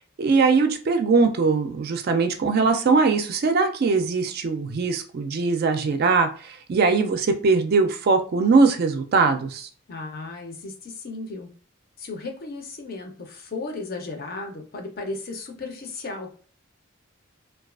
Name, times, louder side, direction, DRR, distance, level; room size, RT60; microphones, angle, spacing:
voice 1, 0.2-9.7, right 4 dB, 50° right, 7 dB, 0.3 m, -21 dB
voice 2, 9.9-11.5 12.0-16.4, left 3 dB, 45° left, 3 dB, 0.5 m, -35 dB
2.3 x 2.3 x 2.3 m, 0.41 s
head